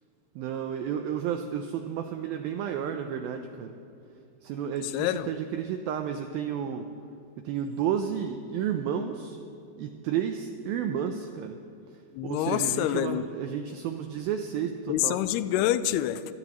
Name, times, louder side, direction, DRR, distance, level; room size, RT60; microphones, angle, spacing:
voice 1, 0.4-3.8 4.4-6.9 7.4-9.4 9.8-11.6 12.2-15.2, right 8 dB, 90° right, 6 dB, 2.1 m, -31 dB
voice 2, 4.9-5.3 12.2-13.2 14.9-16.3, left 13 dB, 85° left, 13 dB, 2.3 m, -26 dB
26.5 x 18.0 x 3.1 m, 2.5 s
omnidirectional pair, 5.1 m